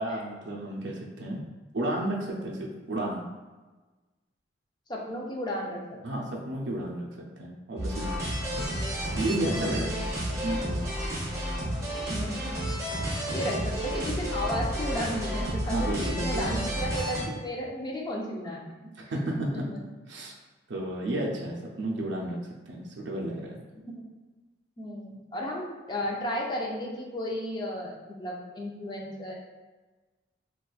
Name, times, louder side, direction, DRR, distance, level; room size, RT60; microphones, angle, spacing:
voice 1, 0.0-1.4 1.7-3.2 6.0-7.1 7.4-8.1 8.5-8.6 9.1-9.9 10.4-11.0 13.4-13.6 15.7-16.7 19.0-19.7 20.1-20.3 20.7-22.4 22.7-23.6, right 1 dB, 70° right, -2 dB, 0.5 m, -32 dB
voice 2, 4.9-6.0 9.6-10.0 12.1-12.5 13.3-18.8 19.5-19.8 23.8-24.0 24.8-29.3, equal, 20° left, -2 dB, 0.4 m, -34 dB
sound 1, 7.8-17.2, equal, 15° right, 0.7 m, -31 dB
3.9 x 2.3 x 2.3 m, 1.2 s
head